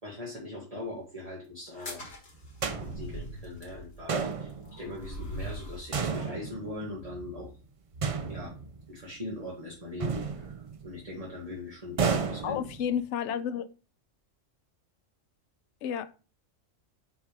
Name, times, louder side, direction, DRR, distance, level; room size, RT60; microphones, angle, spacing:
voice 1, 0.0-2.0 2.6-4.5 4.8-7.5 8.3-8.5 8.9-10.5 10.8-12.6, left 2 dB, 30° right, 1.7 m, -40 dB
sound 1, 1.7-5.9, right 1 dB, 55° left, 2.1 m, -42 dB
sound 2, 2.3-3.6 4.9-6.4 6.9-9.4, equal, 75° right, 1.4 m, -49 dB
sound 3, 2.6-3.5 4.1-5.0 5.9-7.1 8.0-9.0 10.0-11.0 12.0-13.1, right 5 dB, 60° right, 0.3 m, -32 dB
voice 2, 12.4-13.7 15.8-16.2, left 8 dB, 70° left, 0.8 m, -31 dB
6.1 x 3.5 x 4.9 m
omnidirectional pair, 1.3 m